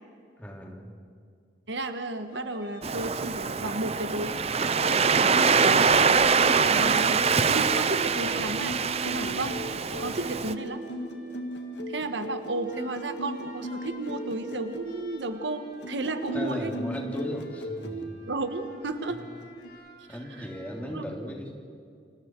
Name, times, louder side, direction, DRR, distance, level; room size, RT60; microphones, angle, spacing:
voice 1, 0.4-0.9 16.3-18.1 20.1-21.5, equal, 10° left, 0 dB, 3.1 m, -36 dB
voice 2, 1.7-4.4 5.8-6.2 6.5-9.6 10.0-10.9 11.9-16.7 18.2-19.2 20.1-20.5 20.8-21.0, right 2 dB, 85° right, 8 dB, 1.5 m, -33 dB
sound 1, 2.3-20.9, equal, 50° left, 4.6 m, -49 dB
Waves surf, 2.8-10.5, right 5 dB, 35° right, 0.7 m, -24 dB
sound 2, 4.6-14.9 15.7-18.0 19.2-19.7, equal, 80° left, 2.0 m, -37 dB
29.5 x 26.0 x 4.7 m, 2.4 s
head